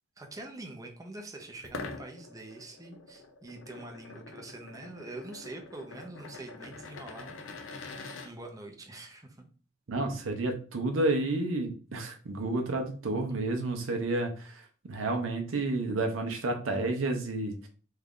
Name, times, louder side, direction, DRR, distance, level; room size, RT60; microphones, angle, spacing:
voice 1, 0.2-9.5, right 2 dB, 15° right, 3 dB, 0.6 m, -45 dB
sound 1, 1.6-8.3, left 3 dB, 70° left, 0.5 m, -45 dB
voice 2, 9.9-17.7, right 2 dB, 75° right, 4 dB, 0.6 m, -31 dB
3.2 x 2.4 x 3.6 m, 0.39 s
head